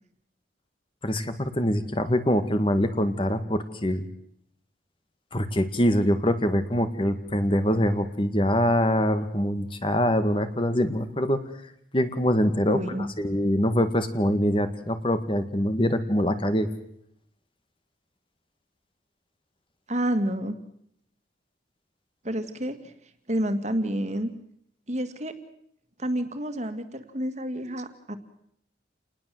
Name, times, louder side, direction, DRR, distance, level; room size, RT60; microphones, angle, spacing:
voice 1, 1.0-4.0 5.3-11.4 11.9-12.8 13.2-16.7, equal, 30° left, 10 dB, 1.8 m, -24 dB
voice 2, 12.7-13.1 19.9-20.6 22.2-22.9 23.3-24.3 24.9-25.3 26.0-28.2, right 1 dB, 40° right, 9 dB, 2.2 m, -29 dB
29.0 x 20.0 x 7.8 m, 0.72 s
head